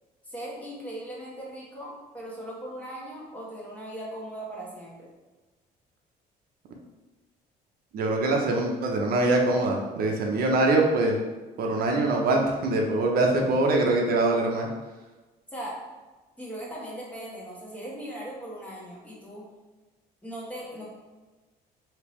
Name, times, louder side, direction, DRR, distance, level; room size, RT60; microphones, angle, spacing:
voice 1, 0.2-5.1 15.5-15.8 16.4-19.4 20.2-20.8, right 1 dB, 10° left, -5 dB, 1.1 m, -39 dB
voice 2, 7.9-11.2 11.6-14.7, right 2 dB, 60° right, 1 dB, 0.6 m, -23 dB
3.5 x 2.8 x 3.0 m, 1.2 s
cardioid pair, 110°, 17 cm